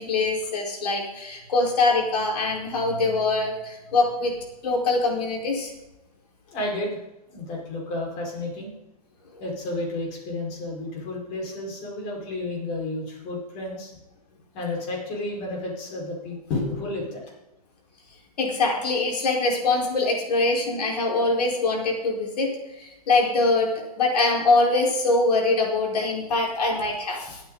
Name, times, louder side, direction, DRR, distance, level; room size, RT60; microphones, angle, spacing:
voice 1, 0.0-4.3 4.6-5.7 18.4-22.5 22.8-27.4, left 3 dB, 80° left, -1 dB, 4.6 m, -23 dB
voice 2, 6.5-7.0 7.3-8.7 9.4-14.0 14.5-17.2, left 2 dB, 35° left, -1 dB, 4.9 m, -31 dB
21.5 x 8.7 x 4.0 m, 0.98 s
hypercardioid pair, 150°, 20 cm